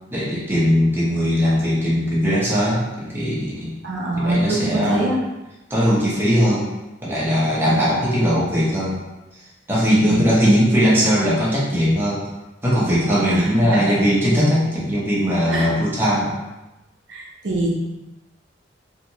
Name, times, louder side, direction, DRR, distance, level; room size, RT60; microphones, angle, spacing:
voice 1, 0.1-3.7 4.2-5.1 5.7-6.7 7.0-9.0 9.7-12.2 12.6-16.3, equal, 10° right, -7 dB, 0.9 m, -19 dB
voice 2, 3.8-5.2 7.7-7.9 10.1-10.3 13.3-14.1 15.5-15.7 17.1-17.7, right 1 dB, 65° right, -3 dB, 0.6 m, -24 dB
3.2 x 2.8 x 2.9 m, 1.0 s
head